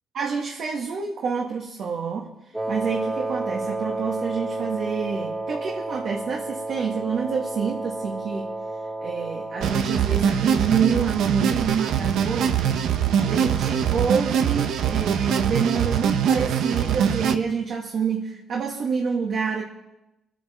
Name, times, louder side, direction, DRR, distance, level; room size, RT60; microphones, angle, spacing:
voice 1, 0.1-2.3 2.7-8.5 9.0-12.8 13.2-19.6, right 6 dB, 65° right, -1 dB, 1.8 m, -27 dB
Wind instrument woodwind instrument, 2.5-9.9, right 2 dB, 5° right, 0.6 m, -31 dB
sound 1, 9.6-17.4, right 8 dB, 80° right, 0.9 m, -23 dB
26.5 x 9.2 x 4.4 m, 0.97 s
cardioid pair, 90°, 0 cm